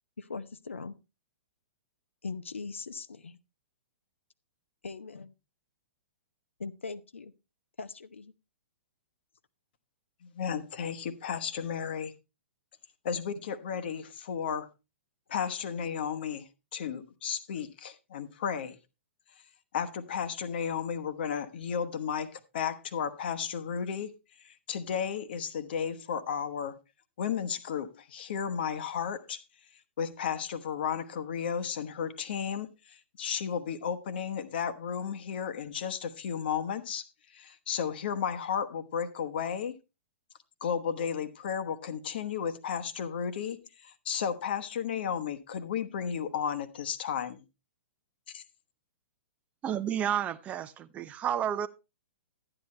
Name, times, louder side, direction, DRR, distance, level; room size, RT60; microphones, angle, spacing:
voice 1, 0.2-1.0 2.2-3.4 4.8-5.3 6.6-7.3 7.8-8.3, left 4 dB, 70° left, 0.7 m, -40 dB
voice 2, 10.2-12.1 13.0-14.7 15.3-18.8 19.7-24.1 24.4-26.8 27.2-29.4 30.0-37.1 37.3-39.7 40.6-47.4 48.3-48.4, left 7 dB, 50° left, 1.1 m, -33 dB
voice 3, 49.6-51.7, right 9 dB, 20° right, 0.5 m, -31 dB
11.5 x 9.9 x 3.2 m
figure-of-eight pair, 110°, 7 cm